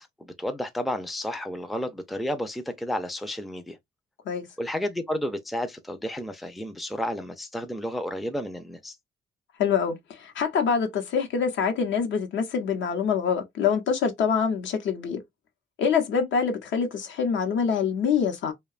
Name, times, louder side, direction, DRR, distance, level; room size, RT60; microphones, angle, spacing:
voice 1, 0.0-3.8 4.6-9.0, left 1 dB, ahead, 0.4 m, -32 dB
voice 2, 9.6-15.2 15.8-18.5, left 6 dB, 70° left, 0.8 m, -25 dB
2.8 x 2.2 x 2.3 m
cardioid pair, 90°, 20 cm